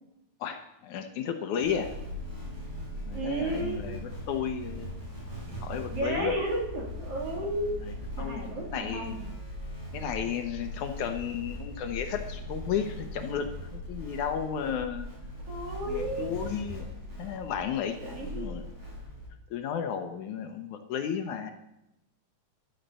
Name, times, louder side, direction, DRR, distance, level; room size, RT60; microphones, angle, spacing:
voice 1, 0.4-1.9 3.1-4.9 5.6-6.3 7.8-8.4 8.7-9.1 9.9-15.1 15.9-16.9 17.2-18.7 19.5-21.5, left 8 dB, 70° left, 6 dB, 2.2 m, -33 dB
sound 1, 1.6-19.3, left 1 dB, 75° right, 8.0 m, -40 dB
voice 2, 3.1-3.8 5.9-7.7 8.2-9.3 15.5-16.6 18.0-18.5, right 1 dB, 45° right, -1 dB, 3.5 m, -33 dB
11.5 x 10.5 x 6.8 m, 0.86 s
omnidirectional pair, 3.8 m